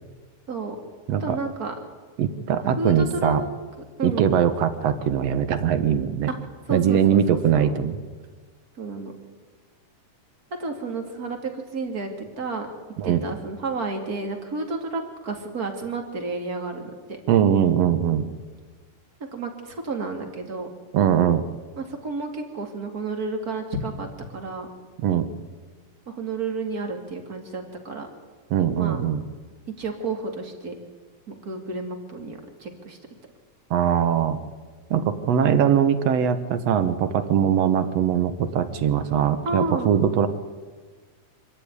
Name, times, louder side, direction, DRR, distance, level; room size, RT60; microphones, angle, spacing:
voice 1, 1.2-1.7 2.8-3.3 4.0-4.3 6.3-6.4 6.7-7.7 8.8-9.1 10.6-12.7 13.0-16.9 19.3-20.7 21.8-24.1 24.3-24.7 26.1-28.1 28.8-29.0 29.8-30.7 31.3-33.0 39.4-39.9, right 3 dB, 30° right, 4 dB, 2.6 m, -31 dB
voice 2, 2.2-3.4 4.0-6.3 6.7-8.0 13.0-13.2 17.3-18.2 20.9-21.4 25.0-25.3 28.5-29.2 33.7-34.4 34.9-40.3, right 9 dB, 60° right, 11 dB, 1.8 m, -21 dB
25.5 x 13.5 x 9.8 m, 1.4 s
omnidirectional pair, 4.1 m